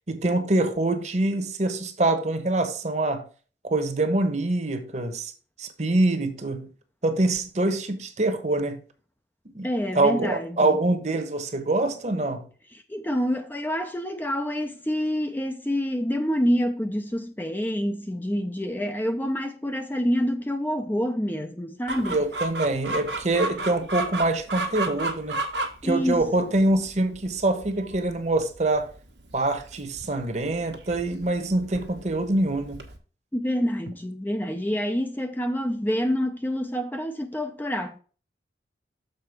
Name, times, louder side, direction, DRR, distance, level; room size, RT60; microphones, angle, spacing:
voice 1, 0.1-3.2 3.6-5.3 5.6-6.7 7.0-8.8 9.5-9.7 9.9-12.5 22.1-25.4 25.8-28.9 29.3-32.8, right 2 dB, 40° right, 1.0 m, -25 dB
voice 2, 9.6-10.8 12.7-22.2 25.8-26.5 33.3-38.0, equal, 10° left, 0.5 m, -27 dB
Chicken rooster, 21.9-33.0, right 2 dB, 85° right, 1.4 m, -34 dB
6.8 x 4.3 x 5.8 m
head